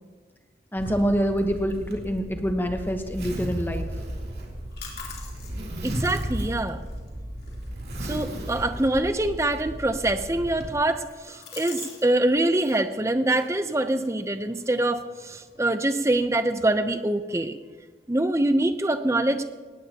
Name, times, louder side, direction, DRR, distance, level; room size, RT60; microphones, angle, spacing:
voice 1, 0.7-3.9, equal, 10° left, 5 dB, 1.1 m, -26 dB
Zipper (clothing), 0.8-10.7, equal, 60° right, 3.1 m, -35 dB
sound 1, 4.3-12.1 12.3-12.8 13.2-15.6, left 6 dB, 55° left, 3.5 m, -47 dB
voice 2, 5.8-6.8 8.0-17.6 18.1-19.4, right 1 dB, 15° right, 9 dB, 0.7 m, -24 dB
19.0 x 17.0 x 2.9 m, 1.4 s
head